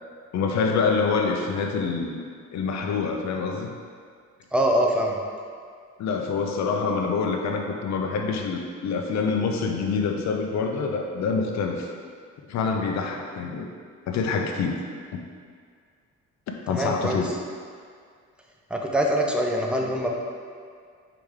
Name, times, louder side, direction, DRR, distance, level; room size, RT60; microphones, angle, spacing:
voice 1, 0.3-2.2 2.5-3.7 6.0-11.9 12.5-13.7 14.1-14.8 15.1-15.2 16.7-17.3, left 5 dB, 65° left, 2 dB, 0.6 m, -26 dB
voice 2, 4.5-5.2 16.7-17.2 18.7-20.1, equal, 5° right, 0 dB, 0.5 m, -23 dB
4.7 x 2.9 x 3.6 m, 2.1 s
cardioid pair, 90°, 30 cm